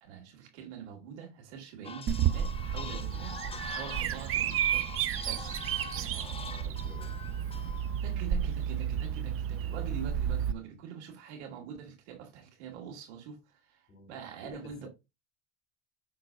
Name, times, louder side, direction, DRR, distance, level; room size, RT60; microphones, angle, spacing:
voice 1, 0.0-4.9 5.2-6.4 8.0-14.9, right 8 dB, 80° right, 2.5 m, -45 dB
sound 1, 1.8-8.2, left 5 dB, 15° left, 0.7 m, -45 dB
Bird vocalization bird call bird song, 2.1-10.5, right 9 dB, 40° right, 0.7 m, -32 dB
voice 2, 6.4-7.1 13.9-14.2 14.4-14.9, left 3 dB, 40° left, 4.2 m, -50 dB
6.4 x 3.9 x 3.8 m
hypercardioid pair, 90°, 34 cm